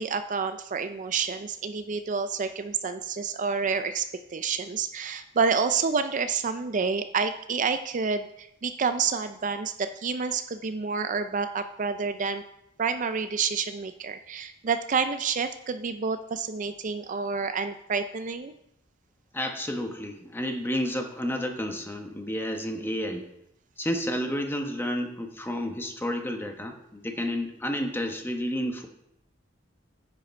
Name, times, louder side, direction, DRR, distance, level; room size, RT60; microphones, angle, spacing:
voice 1, 0.0-12.4 12.8-18.5, right 5 dB, 40° right, 10 dB, 0.4 m, -29 dB
voice 2, 19.3-23.3 23.8-28.9, equal, 10° left, 4 dB, 1.1 m, -31 dB
10.0 x 8.2 x 4.4 m, 0.80 s
head